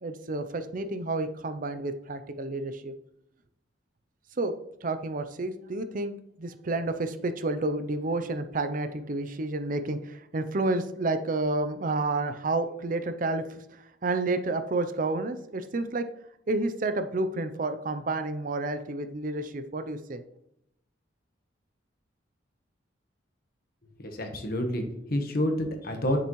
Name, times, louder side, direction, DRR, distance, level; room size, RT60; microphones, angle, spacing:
voice 1, 0.0-2.9 4.4-4.5 4.8-13.6 14.0-16.0 16.5-20.2, right 2 dB, 45° right, 9 dB, 0.5 m, -30 dB
voice 2, 24.0-26.2, left 1 dB, 50° left, 4 dB, 1.3 m, -29 dB
8.6 x 6.8 x 3.1 m, 0.77 s
head